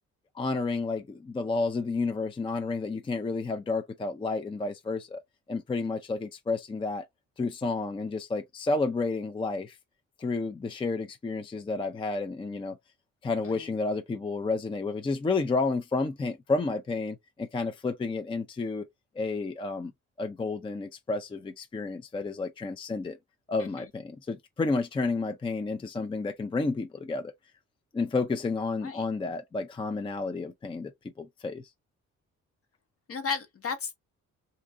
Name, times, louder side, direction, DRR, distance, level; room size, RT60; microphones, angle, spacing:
voice 1, 0.3-5.2 5.5-7.0 7.4-9.8 10.2-12.8 13.2-18.8 19.2-19.9 20.2-23.2 23.5-27.3 27.9-30.9 31.2-31.6, left 3 dB, 15° left, 0.4 m, -31 dB
voice 2, 33.1-34.0, left 5 dB, 50° left, 1.0 m, -34 dB
2.7 x 2.5 x 3.4 m
cardioid pair, 90°, 30 cm